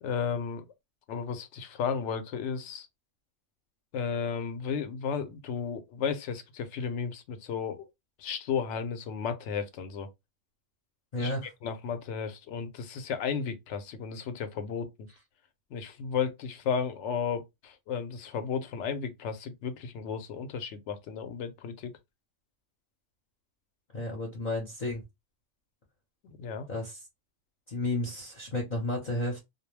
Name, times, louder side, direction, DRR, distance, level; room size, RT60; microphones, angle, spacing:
voice 1, 0.0-0.6 1.1-2.9 3.9-7.9 8.2-10.1 11.2-11.3 11.6-15.1 15.7-21.9 26.2-26.7, left 6 dB, 70° left, 0.8 m, -33 dB
voice 2, 11.1-11.5 23.9-25.0 26.7-27.0 27.7-29.4, left 2 dB, 40° left, 0.8 m, -32 dB
2.2 x 2.1 x 3.1 m
omnidirectional pair, 1.3 m